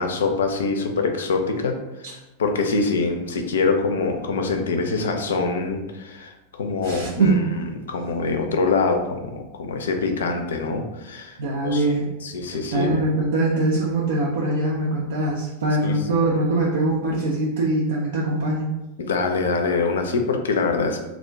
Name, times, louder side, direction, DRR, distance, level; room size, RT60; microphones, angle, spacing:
voice 1, 0.0-2.1 2.4-11.4 11.6-11.8 12.2-13.0 15.8-16.0 19.0-21.0, left 4 dB, 65° left, 4 dB, 0.3 m, -24 dB
voice 2, 6.8-7.6 11.4-12.1 12.7-18.7, right 2 dB, 60° right, -3 dB, 0.3 m, -22 dB
2.3 x 2.1 x 3.3 m, 1.0 s
figure-of-eight pair, 90°, 0 cm